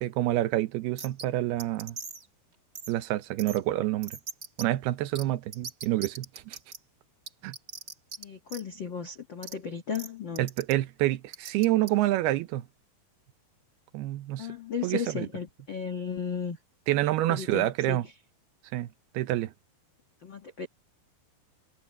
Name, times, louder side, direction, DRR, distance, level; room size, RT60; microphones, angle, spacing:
voice 1, 0.0-2.0 2.9-4.2 4.6-6.6 7.4-7.6 10.4-12.7 13.9-14.5 14.8-15.3 16.9-18.1 18.7-18.9 19.1-19.5, right 15 dB, 75° right, 2.7 m, -28 dB
sound 1, 1.0-1.2 1.6-2.2 2.7-2.9 3.4-3.6 4.0-4.6 5.1-5.2 5.5-6.8 7.3-8.2 8.5-8.6 9.4-9.5 9.9-10.1 10.4-10.7 11.3-11.9, right 5 dB, 50° right, 1.0 m, -40 dB
voice 2, 8.2-10.5 14.4-16.6 17.3-18.1 20.2-20.7, left 6 dB, 90° left, 1.0 m, -35 dB
omnidirectional pair, 4.8 m